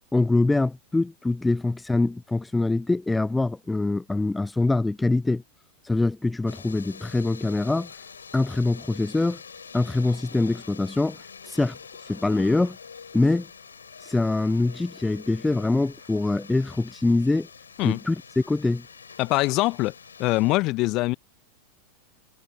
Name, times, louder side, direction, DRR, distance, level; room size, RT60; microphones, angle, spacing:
voice 1, 0.1-5.4 5.8-7.9 8.3-9.4 9.7-11.8 12.1-12.8 13.1-13.5 14.0-17.5 17.8-18.8, left 2 dB, 10° left, 0.5 m, -24 dB
sound 1, 6.5-20.5, left 6 dB, 70° left, 6.7 m, -46 dB
voice 2, 19.2-19.9 20.2-21.2, left 21 dB, 40° left, 0.9 m, -23 dB
figure-of-eight pair, 90°, 0 cm